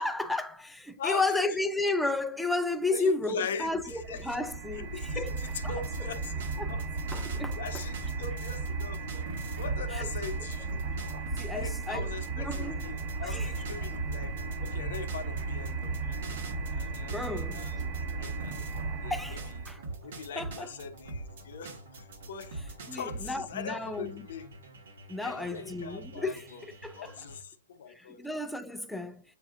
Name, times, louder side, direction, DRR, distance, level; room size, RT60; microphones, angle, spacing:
voice 1, 0.0-5.3 5.6-5.7 6.6-6.7 7.1-7.8 9.9-10.1 11.4-12.1 12.4-12.8 13.2-13.5 17.1-17.9 19.1-19.8 20.4-20.7 22.9-24.2 25.1-27.2 27.9-29.2, left 2 dB, ahead, 0.4 m, -33 dB
voice 2, 1.0-1.4 2.9-4.4 4.7-6.8 7.2-9.2 9.6-11.0 11.5-14.3 14.6-16.4 16.7-18.5 19.0-19.7 20.0-22.6 22.9-24.5 25.2-26.6 27.0-28.2, left 6 dB, 65° left, 0.7 m, -41 dB
sound 1, 3.6-19.8, right 4 dB, 40° right, 1.1 m, -35 dB
sound 2, 5.1-9.9 10.2-19.0 19.4-23.3, right 2 dB, 65° right, 1.3 m, -42 dB
sound 3, 12.6-27.4, right 1 dB, 85° right, 1.7 m, -50 dB
7.4 x 2.6 x 2.4 m
hypercardioid pair, 135°, 0 cm